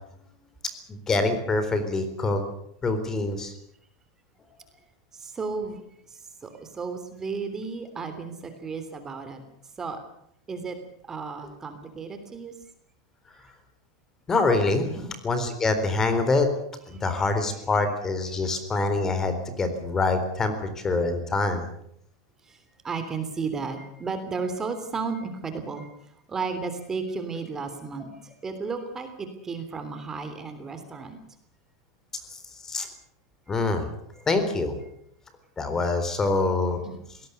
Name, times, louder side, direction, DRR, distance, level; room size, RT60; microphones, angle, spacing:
voice 1, 0.9-2.4 2.8-3.5 14.3-14.9 15.2-16.5 16.9-21.6 32.6-32.9 33.5-33.9 34.3-34.7 35.6-36.8, left 3 dB, 20° left, 10 dB, 4.0 m, -25 dB
voice 2, 5.1-5.8 6.1-9.4 9.8-10.0 10.5-10.8 11.0-12.5 13.3-13.5 15.0-15.1 16.9-17.1 22.4-31.2 32.8-32.9 34.2-34.3 36.8-37.2, right 4 dB, 20° right, 8 dB, 3.3 m, -34 dB
21.0 x 18.0 x 8.3 m, 0.70 s
supercardioid pair, 130°, 2 cm